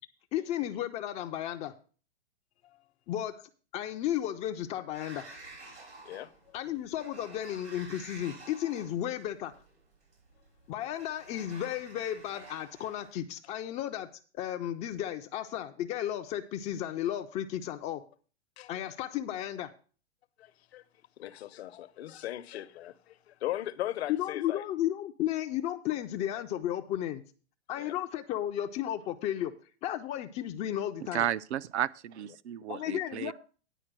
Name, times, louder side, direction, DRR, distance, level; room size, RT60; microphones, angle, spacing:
voice 1, 0.3-1.7 3.1-3.4 3.7-5.3 6.5-9.5 10.7-14.1 14.3-18.0 18.7-19.7 24.1-27.2 27.7-29.5 29.8-31.3 32.7-33.3, left 12 dB, 20° left, 0.4 m, -34 dB
Sliding door, 4.9-13.1, right 2 dB, 90° right, 5.4 m, -51 dB
voice 2, 6.0-6.6 18.6-18.8 20.4-20.8 21.2-24.6 27.8-27.9, left 14 dB, 65° left, 0.8 m, -38 dB
voice 3, 31.1-33.3, right 11 dB, 75° right, 0.6 m, -33 dB
10.0 x 4.5 x 7.5 m
hypercardioid pair, 120°, 34 cm